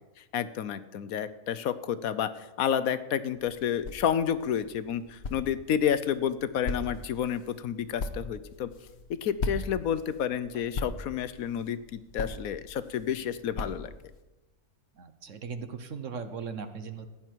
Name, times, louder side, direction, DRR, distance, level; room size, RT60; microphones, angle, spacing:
voice 1, 0.3-2.3 2.6-8.7 9.1-13.9, left 9 dB, 70° left, 14 dB, 1.1 m, -30 dB
sound 1, 3.3-14.2, left 3 dB, 50° left, 1.1 m, -40 dB
voice 2, 15.0-17.1, right 5 dB, 60° right, 9 dB, 1.2 m, -38 dB
15.5 x 10.5 x 4.6 m, 1.1 s
omnidirectional pair, 1.6 m